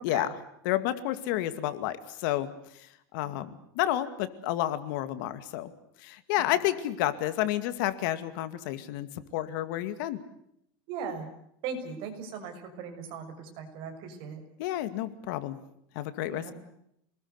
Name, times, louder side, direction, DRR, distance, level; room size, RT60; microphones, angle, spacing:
voice 1, 0.6-2.5 3.1-3.5 3.8-5.7 6.0-10.2 14.6-15.6 16.0-16.5, left 13 dB, 60° left, 12 dB, 2.2 m, -30 dB
voice 2, 10.9-11.3 11.6-14.4 16.3-16.5, right 6 dB, 45° right, 5 dB, 6.4 m, -39 dB
28.0 x 20.5 x 8.2 m, 0.75 s
supercardioid pair, 160°, 12 cm